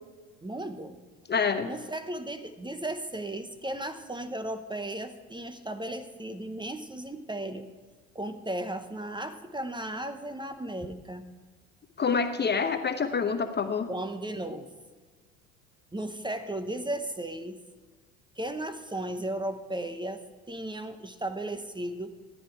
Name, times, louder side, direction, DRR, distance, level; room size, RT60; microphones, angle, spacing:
voice 1, 0.4-1.0 1.7-7.7 8.1-11.2 13.9-14.7 15.9-17.6 18.4-20.2 20.5-22.1, right 1 dB, 10° right, 9 dB, 1.0 m, -35 dB
voice 2, 1.3-1.7 12.0-13.9, left 5 dB, 25° left, 8 dB, 0.9 m, -27 dB
14.0 x 9.6 x 4.6 m, 1.4 s
hypercardioid pair, 70°, 41 cm